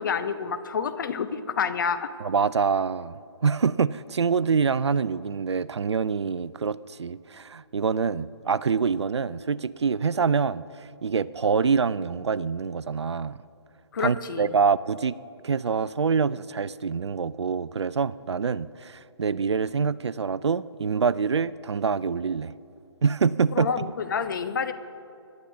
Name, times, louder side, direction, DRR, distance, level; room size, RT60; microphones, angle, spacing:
voice 1, 0.0-2.1 13.9-14.5 23.5-24.7, left 6 dB, 45° left, 9 dB, 0.8 m, -28 dB
voice 2, 2.2-3.1 3.4-10.6 11.0-13.4 14.0-15.2 15.4-22.5 23.0-23.7, right 5 dB, 75° right, 19 dB, 0.4 m, -25 dB
26.5 x 11.5 x 2.8 m, 2.7 s
figure-of-eight pair, 145°, 14 cm